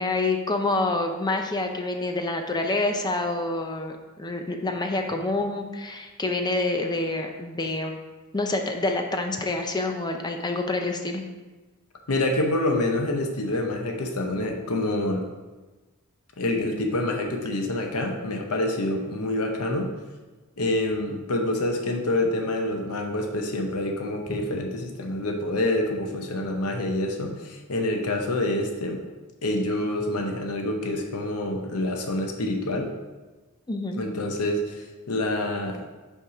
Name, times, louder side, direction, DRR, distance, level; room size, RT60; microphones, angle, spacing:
voice 1, 0.0-8.0 8.3-11.2 33.7-34.0, left 2 dB, 20° left, 4 dB, 0.6 m, -27 dB
voice 2, 12.1-15.2 16.4-19.9 20.6-29.0 29.4-32.9 34.0-35.9, left 1 dB, 75° left, 3 dB, 0.8 m, -27 dB
5.6 x 4.6 x 4.8 m, 1.2 s
head